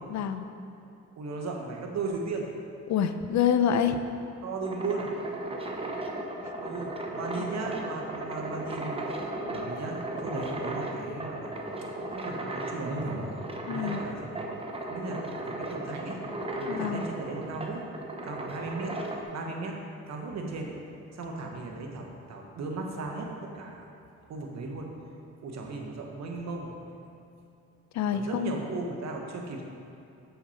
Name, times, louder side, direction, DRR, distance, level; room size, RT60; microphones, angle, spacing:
voice 1, 0.1-0.5 2.9-4.0 7.4-7.5 13.7-14.0 16.7-17.0 27.9-28.5, left 8 dB, 65° left, 9 dB, 0.5 m, -27 dB
voice 2, 1.2-2.5 4.4-5.1 6.6-9.0 9.5-11.5 12.2-13.2 13.7-14.4 14.9-16.2 16.6-17.8 18.1-19.0 19.3-19.8 20.1-20.8 21.1-23.8 24.3-24.9 25.4-26.7 28.1-29.6, right 3 dB, 60° right, 1 dB, 1.1 m, -36 dB
sound 1, 4.4-19.2, right 1 dB, 20° right, 0.8 m, -36 dB
7.4 x 5.7 x 4.3 m, 2.6 s
cardioid pair, 90°, 30 cm